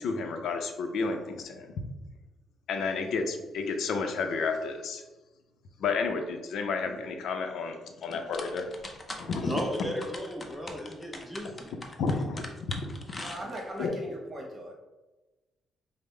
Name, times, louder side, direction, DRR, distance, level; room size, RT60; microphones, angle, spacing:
voice 1, 0.0-1.7 2.7-5.0 5.8-8.7 9.1-9.5 12.0-12.5 12.8-13.4 13.8-13.9, left 4 dB, 70° left, 5 dB, 0.5 m, -31 dB
sound 1, 8.0-13.9, left 2 dB, 25° left, 0.6 m, -42 dB
voice 2, 9.4-11.7 12.1-12.2, equal, 5° right, -1 dB, 0.9 m, -35 dB
voice 3, 13.2-14.7, right 1 dB, 35° right, 0 dB, 1.1 m, -39 dB
5.2 x 2.1 x 3.2 m, 1.1 s
cardioid pair, 90°, 0 cm